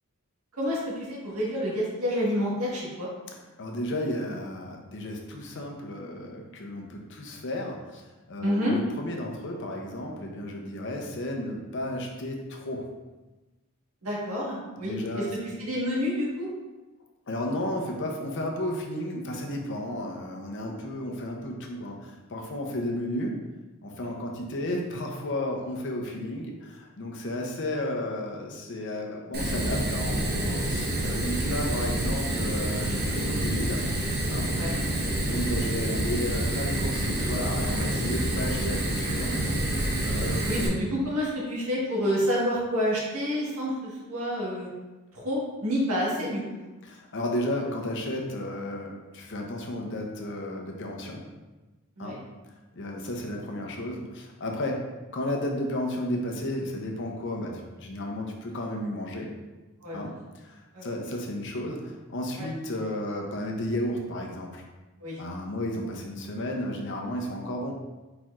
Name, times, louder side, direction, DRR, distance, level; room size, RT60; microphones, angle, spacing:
voice 1, 0.6-3.1 8.4-8.7 14.0-16.5 23.9-24.1 31.5-31.7 34.5-34.7 38.2-38.4 40.4-44.7 45.1-46.4 52.0-52.2 59.8-60.0 60.7-60.9 62.4-62.5 65.0-65.2, equal, 85° right, -5 dB, 1.5 m, -29 dB
voice 2, 3.6-8.0 8.3-12.9 14.8-15.3 17.3-23.4 23.8-33.8 34.2-34.5 35.2-39.4 40.0-40.4 46.8-51.2 52.0-52.2 52.7-59.3 59.9-64.6 65.2-67.7, left 1 dB, 55° left, 1 dB, 0.7 m, -33 dB
Fire, 29.3-40.7, right 1 dB, 45° right, 0.9 m, -28 dB
4.4 x 4.4 x 2.4 m, 1.2 s
head